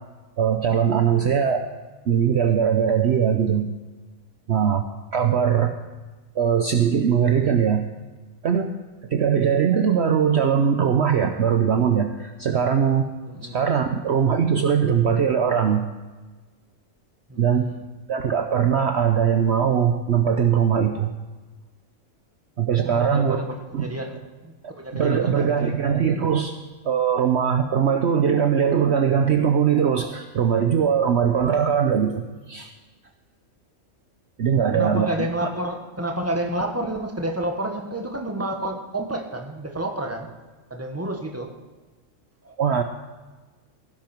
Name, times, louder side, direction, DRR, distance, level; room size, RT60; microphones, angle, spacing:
voice 1, 0.4-1.7 2.1-3.7 4.5-4.8 5.1-5.7 6.3-7.8 8.4-8.7 9.1-13.1 13.4-15.8 17.4-17.7 18.1-21.1 22.6-23.4 23.7-23.9 24.9-26.5 26.8-32.7 34.4-35.1 42.6-42.8, right 7 dB, 55° right, 6 dB, 1.0 m, -21 dB
voice 2, 13.2-13.6 17.3-17.8 22.8-25.8 34.5-40.3 40.7-41.5 42.4-42.5, right 1 dB, 10° right, 2 dB, 1.6 m, -30 dB
17.0 x 10.5 x 4.6 m, 1.3 s
omnidirectional pair, 1.4 m